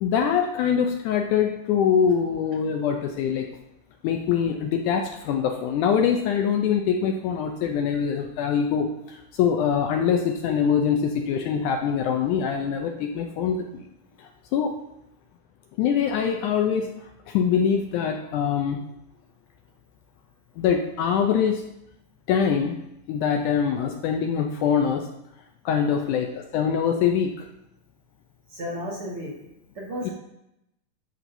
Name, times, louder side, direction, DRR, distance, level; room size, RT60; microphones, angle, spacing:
voice 1, 0.0-3.5 4.0-13.8 14.2-14.8 15.8-16.9 17.3-18.8 20.6-21.6 22.3-22.8 23.1-25.1 25.7-27.5 30.0-30.1, left 7 dB, 80° left, 3 dB, 1.9 m, -24 dB
voice 2, 28.5-29.3 29.8-30.1, equal, 50° right, -5 dB, 2.1 m, -33 dB
10.5 x 6.3 x 2.6 m, 0.84 s
omnidirectional pair, 3.9 m